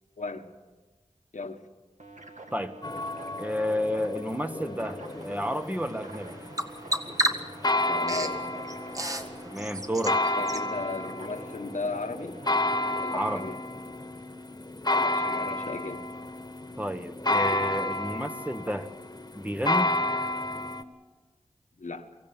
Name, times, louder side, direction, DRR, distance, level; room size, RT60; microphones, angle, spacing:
voice 1, 0.2-0.5 1.3-1.6 7.8-8.4 10.3-12.4 13.0-13.5 14.9-16.0 21.8-22.1, left 3 dB, 90° left, 5 dB, 1.6 m, -36 dB
sound 1, 2.0-12.9, right 2 dB, 80° right, 2.1 m, -47 dB
sound 2, 2.8-20.8, left 2 dB, 30° left, 1.6 m, -31 dB
voice 2, 3.4-6.4 9.4-10.2 13.1-13.5 16.8-18.9 19.3-20.0, equal, 10° right, 8 dB, 1.3 m, -31 dB
Bird vocalization bird call bird song, 5.1-10.7, right 1 dB, 30° right, 1.7 m, -34 dB
23.5 x 16.5 x 8.9 m, 1.2 s
wide cardioid pair, 50°, 12 cm